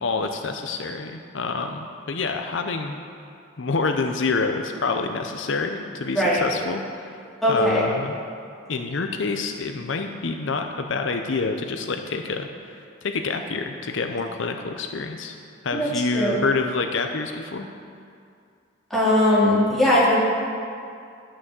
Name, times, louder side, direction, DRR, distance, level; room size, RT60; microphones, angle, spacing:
voice 1, 0.0-3.0 3.6-7.1 7.5-8.2 8.7-15.4 15.6-17.7, left 4 dB, 70° left, 5 dB, 0.6 m, -27 dB
voice 2, 7.4-7.8 15.7-16.4 18.9-20.2, left 1 dB, ahead, -9 dB, 2.8 m, -20 dB
11.5 x 6.2 x 7.7 m, 2.4 s
head